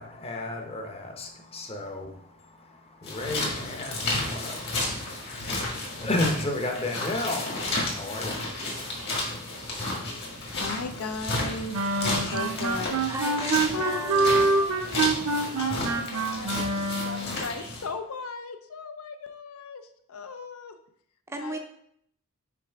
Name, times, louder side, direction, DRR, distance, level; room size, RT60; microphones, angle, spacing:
voice 1, 0.0-9.3, left 1 dB, 25° left, 3 dB, 0.8 m, -34 dB
sound 1, 3.0-17.9, left 2 dB, 50° left, 1.7 m, -32 dB
voice 2, 10.1-13.0 13.7-15.1 15.6-19.8 20.1-20.8 21.4-21.6, left 4 dB, 75° left, 8 dB, 0.5 m, -37 dB
sound 2, 11.7-17.4, right 3 dB, 75° right, 0.6 m, -26 dB
voice 3, 13.1-14.6 21.3-21.6, right 1 dB, 10° right, 4 dB, 0.5 m, -35 dB
6.0 x 4.8 x 3.4 m, 0.70 s
head